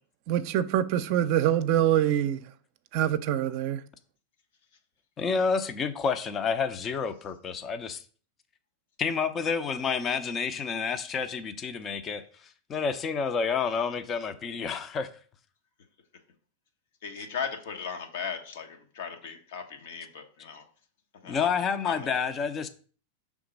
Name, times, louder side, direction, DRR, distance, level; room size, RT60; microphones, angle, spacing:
voice 1, 0.3-2.4 2.9-3.8, right 11 dB, 55° right, 0.5 m, -25 dB
voice 2, 5.2-8.0 9.0-15.1 21.2-22.7, left 5 dB, 30° left, 0.6 m, -29 dB
voice 3, 17.0-20.6 21.2-21.5 21.8-22.1, left 6 dB, 70° left, 1.3 m, -37 dB
5.8 x 3.6 x 5.2 m
hypercardioid pair, 115°, 0 cm